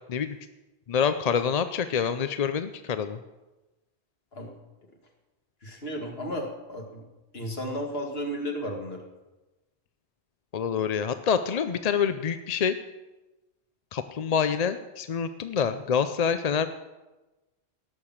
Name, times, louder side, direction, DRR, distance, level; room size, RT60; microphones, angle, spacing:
voice 1, 0.9-3.2 10.5-12.7 13.9-16.7, left 7 dB, 50° left, 10 dB, 0.5 m, -26 dB
voice 2, 5.6-7.1 7.3-9.0, equal, 65° left, 1 dB, 2.3 m, -33 dB
17.5 x 6.8 x 7.3 m, 1.1 s
omnidirectional pair, 1.1 m